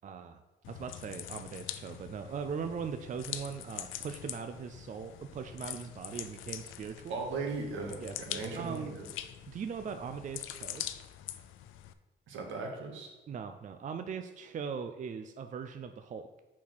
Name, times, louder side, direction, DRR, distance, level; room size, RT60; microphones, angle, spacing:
voice 1, 0.0-0.4 0.7-7.2 8.0-8.1 8.5-9.0 9.5-10.8 13.3-16.4, right 6 dB, 40° right, 8 dB, 0.5 m, -40 dB
sound 1, 0.6-11.9, left 12 dB, 90° left, 0.4 m, -44 dB
voice 2, 7.1-9.1 12.3-13.1, right 4 dB, 80° right, 1 dB, 1.6 m, -37 dB
6.0 x 4.1 x 6.1 m, 1.1 s
cardioid pair, 90°, 20 cm